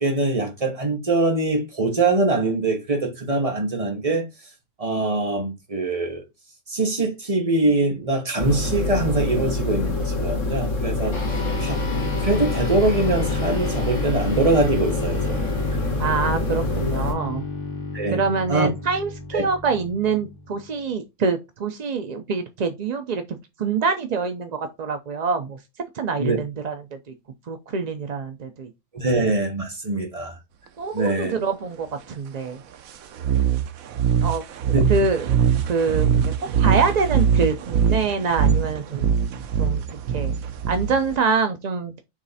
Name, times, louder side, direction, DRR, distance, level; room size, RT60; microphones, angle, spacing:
voice 1, 0.0-4.2 4.8-6.2 6.7-11.2 11.6-11.8 12.2-15.5 17.9-18.2 18.5-18.7 19.3-19.5 26.2-26.4 28.9-30.4 30.9-31.3 34.7-34.8, right 2 dB, 25° right, 1.4 m, -23 dB
sound 1, 8.4-17.1, left 2 dB, 60° left, 1.9 m, -25 dB
sound 2, 11.1-20.9, left 3 dB, 30° left, 2.2 m, -33 dB
voice 2, 16.0-17.4 18.1-25.6 25.9-27.1 27.5-28.7 30.8-32.6 34.2-34.4 34.9-36.3 36.6-39.2 39.6-39.8 40.1-40.3 40.7-42.0, right 5 dB, 50° right, 0.5 m, -25 dB
sound 3, 33.2-41.2, right 7 dB, 85° right, 1.1 m, -22 dB
7.4 x 3.2 x 4.1 m
omnidirectional pair, 1.4 m